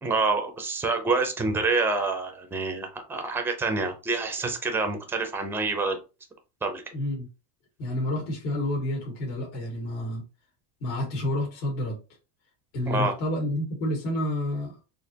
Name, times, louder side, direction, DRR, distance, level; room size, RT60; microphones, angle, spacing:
voice 1, 0.0-6.0 6.6-6.8 12.9-13.1, right 3 dB, 5° right, 6 dB, 0.4 m, -27 dB
voice 2, 6.9-7.3 7.8-10.2 10.8-12.0 12.7-14.8, left 1 dB, 60° left, -1 dB, 2.0 m, -29 dB
4.3 x 2.8 x 2.7 m, 0.30 s
supercardioid pair, 130°, 50 cm